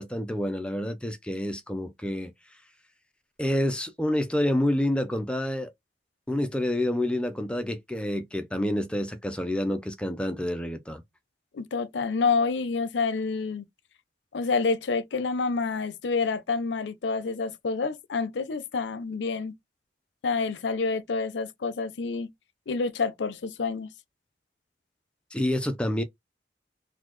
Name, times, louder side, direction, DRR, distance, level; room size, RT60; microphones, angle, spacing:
voice 1, 0.0-2.3 3.4-5.7 6.3-11.0 25.3-26.0, left 1 dB, 5° left, 0.5 m, -28 dB
voice 2, 11.5-13.6 14.3-19.5 20.2-22.3 22.7-23.9, left 4 dB, 85° left, 0.5 m, -28 dB
4.1 x 2.3 x 3.1 m
head